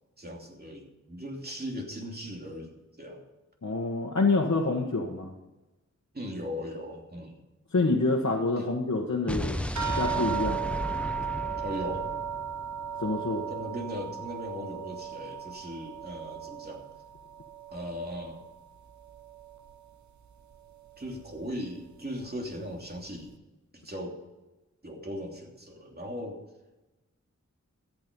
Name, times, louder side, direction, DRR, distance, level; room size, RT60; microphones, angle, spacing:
voice 1, 0.2-3.2 6.1-7.4 8.6-8.7 11.6-12.1 13.5-16.9 17.7-18.4 21.0-23.4 23.7-24.2 24.8-26.4, equal, 30° right, 0 dB, 3.0 m, -38 dB
voice 2, 3.6-5.3 7.7-9.6 9.9-10.7 13.0-13.4, left 3 dB, 60° left, -2 dB, 1.5 m, -27 dB
Explosion, 9.3-13.4, equal, 5° left, 0.8 m, -35 dB
sound 1, 9.8-18.6 18.9-19.8 20.5-20.6 21.0-21.2, right 8 dB, 70° right, 0.9 m, -36 dB
14.0 x 9.0 x 5.4 m, 1.1 s
wide cardioid pair, 75°, 30 cm